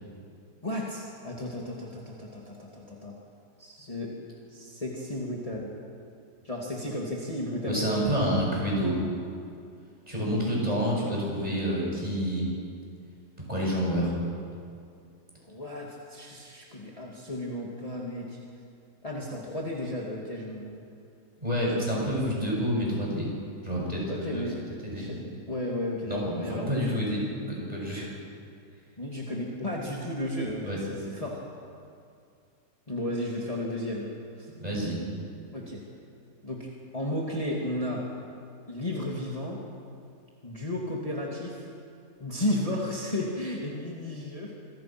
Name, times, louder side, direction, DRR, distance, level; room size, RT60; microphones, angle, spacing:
voice 1, 0.6-3.1 3.6-4.1 4.5-5.7 6.4-8.1 15.4-18.4 19.0-20.8 21.6-22.1 24.1-24.6 24.9-25.2 25.5-27.1 29.0-31.4 32.9-34.5 35.5-35.8 36.4-38.0 38.7-39.6 40.4-41.7 42.2-44.5, left 1 dB, 20° left, -3 dB, 2.6 m, -34 dB
voice 2, 7.7-9.0 10.1-12.5 13.5-14.2 21.4-23.3 23.6-24.5 24.8-25.2 26.1-28.1 30.6-30.8 34.6-35.0, equal, 25° right, -3 dB, 7.5 m, -28 dB
27.0 x 23.5 x 6.1 m, 2.4 s
omnidirectional pair, 1.7 m